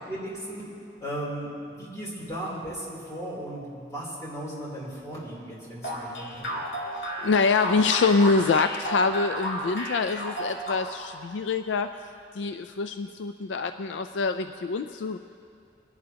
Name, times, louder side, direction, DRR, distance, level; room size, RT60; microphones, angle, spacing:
voice 1, 0.1-0.6 1.0-6.6, right 1 dB, 20° left, -6 dB, 3.2 m, -36 dB
sound 1, 5.8-11.2, equal, 75° left, 2.6 m, -32 dB
voice 2, 6.9-11.9 12.3-15.2, left 4 dB, 90° left, 8 dB, 0.4 m, -25 dB
23.0 x 11.0 x 2.9 m, 2.5 s
head